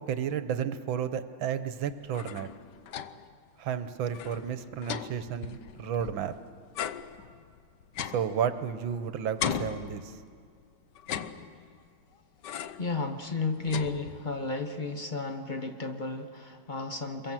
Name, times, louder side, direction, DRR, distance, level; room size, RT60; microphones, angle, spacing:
voice 1, 0.0-2.5 3.6-6.3 8.1-10.1, right 8 dB, 70° right, 11 dB, 1.7 m, -32 dB
sound 1, 1.9-3.4 3.7-3.8 4.1-6.3 6.7-9.0 9.4-10.5 11.0-11.9 12.4-12.9 13.3-14.5, left 8 dB, 65° left, 1.3 m, -38 dB
voice 2, 12.8-17.3, left 3 dB, 30° left, 6 dB, 1.0 m, -33 dB
27.5 x 22.5 x 7.6 m, 2.2 s
omnidirectional pair, 2.4 m